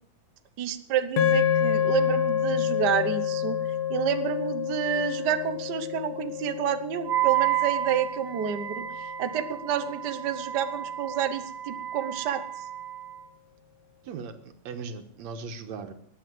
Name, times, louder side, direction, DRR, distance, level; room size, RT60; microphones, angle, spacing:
voice 1, 0.6-3.6 3.9-12.6, right 8 dB, 85° right, 9 dB, 0.9 m, -29 dB
sound 1, 1.2-9.5, left 9 dB, 80° left, 2.9 m, -28 dB
Wind instrument woodwind instrument, 7.1-13.2, right 12 dB, 45° right, 1.6 m, -31 dB
voice 2, 14.0-15.9, right 5 dB, 65° right, 8 dB, 2.4 m, -38 dB
20.5 x 7.8 x 7.8 m, 0.67 s
omnidirectional pair, 3.6 m